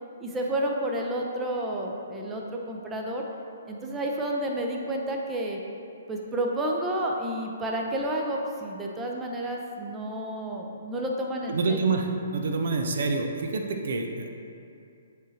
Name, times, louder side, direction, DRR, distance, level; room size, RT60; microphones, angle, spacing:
voice 1, 0.2-3.2 3.6-5.6 6.1-11.6, right 1 dB, 15° right, 0 dB, 0.6 m, -30 dB
voice 2, 11.5-14.4, right 3 dB, 60° right, 3 dB, 0.6 m, -27 dB
10.0 x 3.7 x 2.9 m, 2.5 s
figure-of-eight pair, 130°, 0 cm